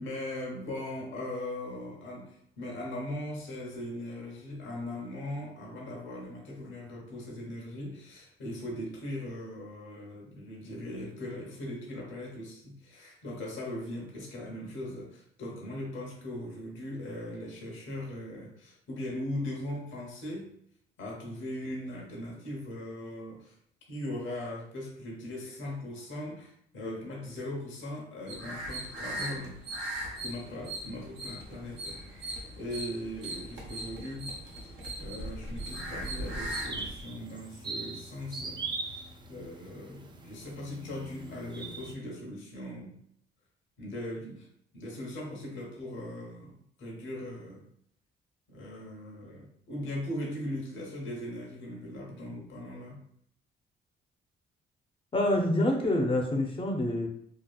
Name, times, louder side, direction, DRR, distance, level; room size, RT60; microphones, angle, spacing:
voice 1, 0.0-20.6 21.0-23.5 23.9-29.6 30.2-34.3 34.6-43.0 43.8-44.5 44.7-47.6 48.5-53.1, left 1 dB, 75° left, -2 dB, 0.9 m, -39 dB
sound 1, 28.3-36.9, right 1 dB, 70° right, 0.9 m, -39 dB
sound 2, 35.7-41.9, right 3 dB, 25° right, 0.3 m, -41 dB
voice 2, 55.1-57.1, left 1 dB, 25° left, 1 dB, 0.5 m, -26 dB
2.8 x 2.3 x 2.3 m, 0.69 s
cardioid pair, 90°, 20 cm